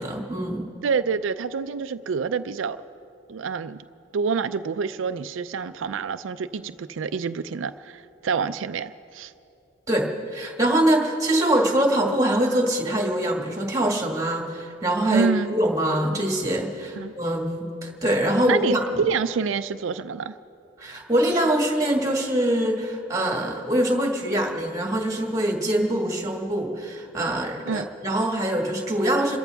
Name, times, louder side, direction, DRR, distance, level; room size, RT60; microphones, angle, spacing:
voice 1, 0.0-0.7 9.9-19.0 20.8-29.4, right 1 dB, 15° right, 1 dB, 1.7 m, -24 dB
voice 2, 0.8-2.8 3.3-3.8 4.1-9.3 15.1-15.5 17.0-17.1 18.5-20.3 27.7-27.9, right 5 dB, 80° right, 11 dB, 0.4 m, -27 dB
27.0 x 14.0 x 3.5 m, 2.5 s
head